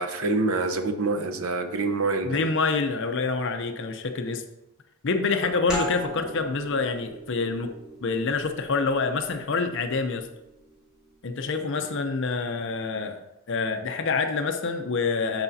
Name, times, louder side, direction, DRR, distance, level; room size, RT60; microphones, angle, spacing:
voice 1, 0.0-2.4, right 3 dB, 75° right, 6 dB, 0.8 m, -26 dB
voice 2, 2.2-4.4 5.0-7.7 8.0-10.3 11.2-13.2 13.5-15.4, left 4 dB, 55° left, 6 dB, 0.6 m, -26 dB
sound 1, 5.7-11.0, right 1 dB, 5° right, 2.5 m, -38 dB
13.0 x 4.8 x 2.7 m, 0.95 s
head